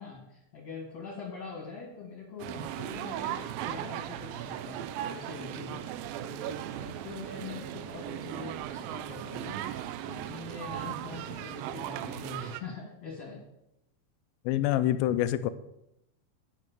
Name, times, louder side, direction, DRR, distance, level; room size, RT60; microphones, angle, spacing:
voice 1, 0.0-5.8 6.1-13.4, left 4 dB, 45° left, -4 dB, 3.2 m, -43 dB
sound 1, 2.4-12.6, right 11 dB, 80° right, 2.2 m, -37 dB
voice 2, 14.5-15.5, left 13 dB, 80° left, 12 dB, 2.3 m, -26 dB
10.0 x 6.4 x 7.5 m, 0.84 s
omnidirectional pair, 4.5 m